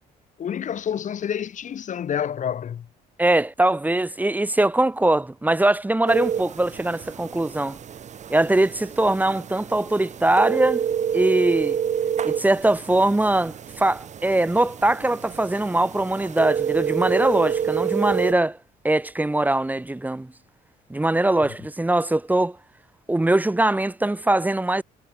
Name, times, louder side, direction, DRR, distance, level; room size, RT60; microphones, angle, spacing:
voice 1, 0.4-2.9, left 9 dB, 45° left, 3.0 m, -28 dB
voice 2, 3.2-7.8 8.3-10.9 11.1-11.8 12.2-18.6 18.8-20.3 20.9-22.6 23.1-24.8, right 2 dB, 10° right, 3.0 m, -21 dB
sound 1, 6.1-18.3, right 8 dB, 45° right, 2.6 m, -28 dB
cardioid pair, 110°, 17 cm